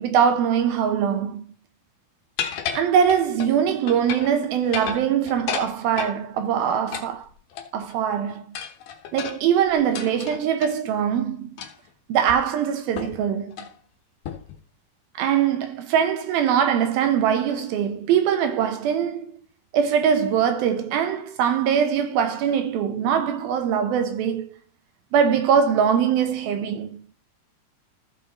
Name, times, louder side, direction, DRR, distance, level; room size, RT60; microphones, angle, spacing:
voice 1, 0.0-1.4 2.7-7.3 7.7-8.4 9.1-11.5 12.1-13.6 15.2-19.3 19.7-24.5 25.1-27.0, right 8 dB, 75° right, 2.7 m, -22 dB
sound 1, 2.4-3.5 3.9-4.4 4.6-6.2 6.9-7.9 8.5-10.7 11.6-11.9 12.3-12.4 13.0-13.2 13.5-13.7 14.2-14.6, left 8 dB, 65° left, 2.5 m, -33 dB
14.5 x 5.4 x 4.2 m
omnidirectional pair, 4.4 m